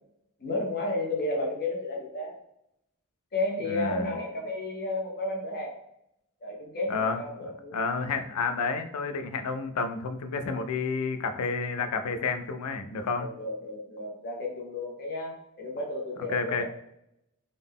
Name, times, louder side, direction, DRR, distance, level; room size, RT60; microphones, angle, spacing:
voice 1, 0.4-2.3 3.3-5.7 6.4-7.8 13.2-16.6, left 2 dB, 45° left, -1 dB, 0.8 m, -32 dB
voice 2, 3.7-4.1 6.9-7.2 7.7-13.3 16.3-16.6, left 4 dB, 80° left, 8 dB, 0.4 m, -30 dB
3.8 x 2.1 x 3.4 m, 0.78 s
head